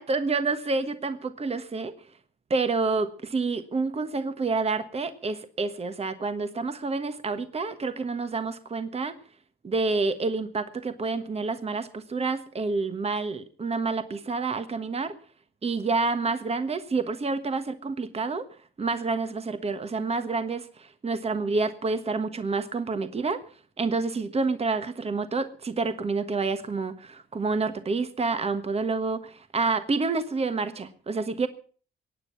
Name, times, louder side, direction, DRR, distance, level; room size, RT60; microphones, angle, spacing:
voice 1, 0.0-1.9 2.5-9.1 9.6-15.1 15.6-18.5 18.8-23.4 23.8-31.5, right 3 dB, 30° right, 10 dB, 1.3 m, -28 dB
22.5 x 9.4 x 5.8 m, 0.43 s
cardioid pair, 90°, 20 cm